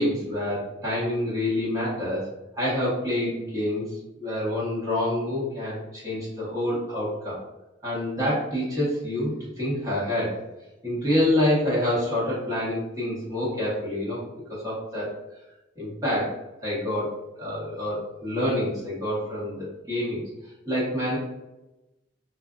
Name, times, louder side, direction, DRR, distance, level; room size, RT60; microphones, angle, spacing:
voice 1, 0.0-2.3 2.5-3.9 4.2-7.4 7.8-10.4 10.8-14.2 14.6-15.1 15.8-16.3 16.6-20.2 20.6-21.2, left 1 dB, 20° right, -8 dB, 1.1 m, -27 dB
2.4 x 2.3 x 2.4 m, 0.98 s
head